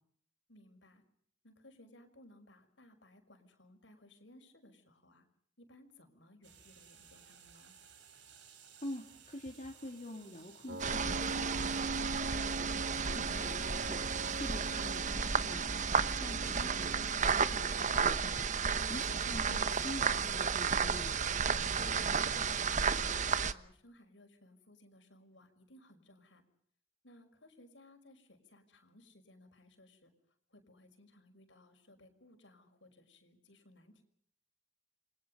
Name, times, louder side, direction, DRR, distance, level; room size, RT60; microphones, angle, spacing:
voice 1, 0.5-1.0 1.4-5.3 5.6-7.8 22.2-26.4 27.0-30.1 30.5-34.0, left 1 dB, 85° left, 6 dB, 5.8 m, -60 dB
sound 1, 6.4-15.0, right 7 dB, 85° right, 4.7 m, -60 dB
voice 2, 8.8-21.2, left 1 dB, 40° left, 1 dB, 3.0 m, -47 dB
Piano, 10.7-17.2, right 2 dB, 65° right, 2.5 m, -43 dB
sound 2, 10.8-23.5, right 6 dB, 45° right, 1.1 m, -33 dB
29.5 x 24.5 x 5.4 m, 0.64 s
head